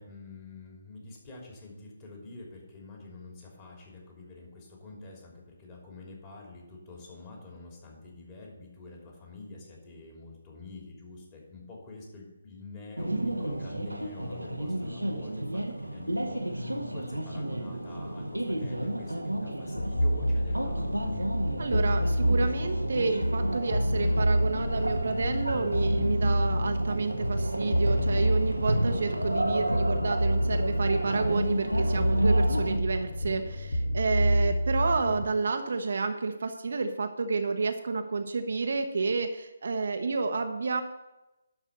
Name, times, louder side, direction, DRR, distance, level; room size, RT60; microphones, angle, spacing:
voice 1, 0.0-21.1, left 3 dB, 25° left, -1 dB, 3.0 m, -47 dB
sound 1, 13.0-32.8, right 1 dB, 90° right, 1.0 m, -32 dB
sound 2, 19.7-35.3, equal, 65° left, 0.8 m, -28 dB
voice 2, 21.6-40.8, right 4 dB, 55° right, 6 dB, 0.9 m, -30 dB
11.5 x 4.8 x 6.8 m, 0.99 s
figure-of-eight pair, 140°, 0 cm